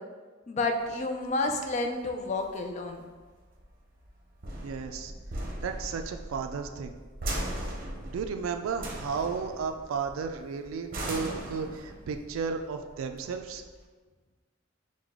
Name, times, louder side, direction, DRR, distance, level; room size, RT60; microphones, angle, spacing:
voice 1, 0.5-3.0, left 2 dB, 35° left, 4 dB, 0.4 m, -30 dB
sound 1, 0.8-13.8, right 1 dB, 45° right, 0.7 m, -39 dB
voice 2, 4.6-5.1 5.6-6.9 8.0-13.6, right 5 dB, 85° right, 6 dB, 0.3 m, -34 dB
4.9 x 2.2 x 3.5 m, 1.4 s
head